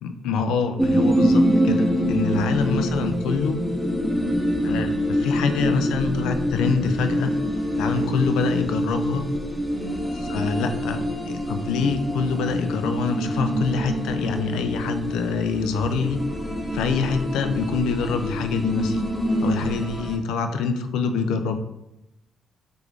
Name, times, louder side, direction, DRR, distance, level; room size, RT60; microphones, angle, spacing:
voice 1, 0.0-3.6 4.6-7.4 7.8-9.2 10.3-16.2 16.7-19.0 19.4-21.6, left 5 dB, 90° left, 8 dB, 0.4 m, -25 dB
sound 1, 0.8-20.2, equal, ahead, 0.6 m, -25 dB
voice 2, 2.2-2.5 7.9-8.2 9.7-10.0 19.3-19.7, right 6 dB, 90° right, 5 dB, 0.5 m, -36 dB
3.5 x 2.5 x 4.5 m, 0.89 s
cardioid pair, 90°, 0 cm